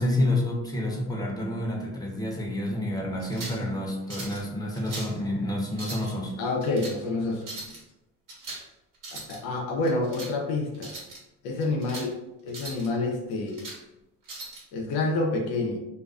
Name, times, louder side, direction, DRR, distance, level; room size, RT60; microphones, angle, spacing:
voice 1, 0.0-6.3, left 1 dB, 10° left, -2 dB, 0.8 m, -29 dB
sound 1, 3.2-3.6 4.1-4.4 4.7-5.2 5.7-6.1 6.6-7.0 7.4-7.8 8.3-8.7 8.9-9.4 9.8-10.3 10.7-11.2 11.6-12.1 12.5-12.9 13.3-13.8 14.3-14.6, right 2 dB, 60° right, 1.1 m, -40 dB
voice 2, 6.4-7.7 9.1-10.9 11.4-12.2 12.4-13.7 14.7-15.8, left 2 dB, 85° left, 1 dB, 0.5 m, -28 dB
2.5 x 2.2 x 2.3 m, 0.94 s
supercardioid pair, 70°, 37 cm